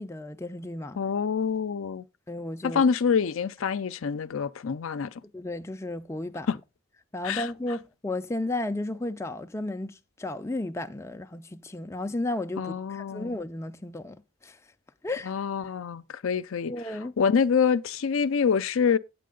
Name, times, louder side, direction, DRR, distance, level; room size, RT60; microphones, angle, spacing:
voice 1, 0.0-1.0 2.3-2.8 5.3-6.5 7.1-14.6 15.0-15.3 16.7-17.1, left 2 dB, 15° left, 0.4 m, -33 dB
voice 2, 1.0-2.0 2.6-5.1 6.5-6.6 7.2-7.5 12.6-13.3 15.3-16.7 17.2-19.0, left 6 dB, 70° left, 0.5 m, -26 dB
9.3 x 8.3 x 3.7 m
head